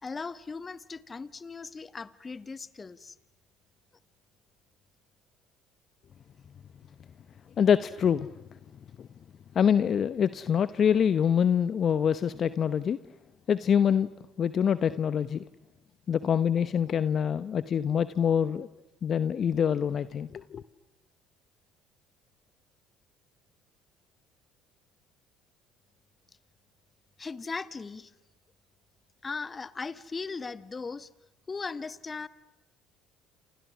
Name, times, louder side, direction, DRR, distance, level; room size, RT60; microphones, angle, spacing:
voice 1, 0.0-3.1 27.2-28.1 29.2-31.1 31.5-32.3, left 4 dB, 30° left, 1.4 m, -38 dB
voice 2, 7.6-8.3 9.0-9.1 9.5-13.0 13.5-14.1 14.4-15.4 16.1-18.7 19.0-20.6, left 8 dB, 45° left, 0.9 m, -25 dB
29.0 x 28.5 x 6.2 m
hypercardioid pair, 65°, 0 cm